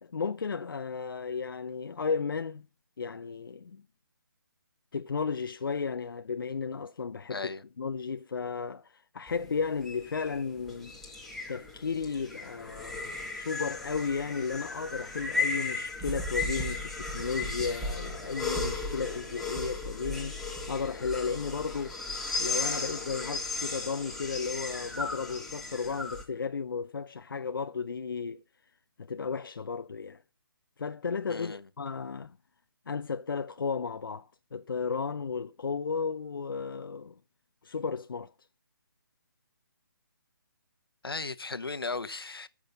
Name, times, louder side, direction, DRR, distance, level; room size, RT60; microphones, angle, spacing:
voice 1, 0.0-2.7 3.0-3.8 4.9-10.9 11.5-13.0 13.3-20.4 20.7-22.0 22.4-28.4 29.0-30.2 30.8-32.4 32.9-37.1 37.6-38.3, left 5 dB, 70° left, 0.7 m, -34 dB
voice 2, 7.3-7.6 31.3-31.6 41.0-42.5, left 3 dB, 90° left, 1.1 m, -36 dB
sound 1, 9.3-26.2, left 3 dB, ahead, 1.9 m, -35 dB
14.0 x 6.3 x 7.0 m
figure-of-eight pair, 150°, 12 cm